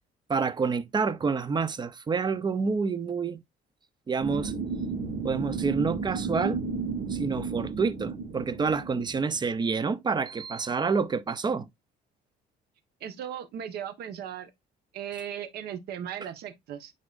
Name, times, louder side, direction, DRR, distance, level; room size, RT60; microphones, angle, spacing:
voice 1, 0.3-3.4 4.1-4.5 5.2-6.6 7.1-11.7, right 5 dB, 25° right, 0.7 m, -28 dB
sound 1, 4.2-9.2, right 4 dB, 55° right, 1.6 m, -33 dB
voice 2, 13.0-14.5 14.9-16.9, right 9 dB, 70° right, 1.3 m, -37 dB
9.6 x 4.0 x 2.5 m
cardioid pair, 110°, 17 cm